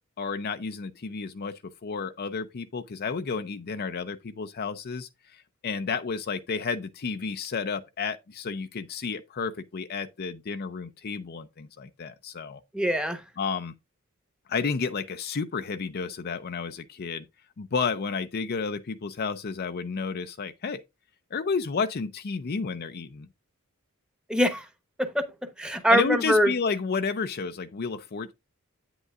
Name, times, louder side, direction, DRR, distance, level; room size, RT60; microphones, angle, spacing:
voice 1, 0.2-5.1 5.6-12.6 13.4-13.7 14.5-17.3 17.6-20.8 21.3-23.3 25.9-28.3, left 5 dB, 45° left, 0.5 m, -31 dB
voice 2, 12.7-13.2 24.3-24.7 25.0-25.2 25.6-26.5, equal, 5° right, 1.0 m, -23 dB
8.9 x 8.0 x 2.4 m
head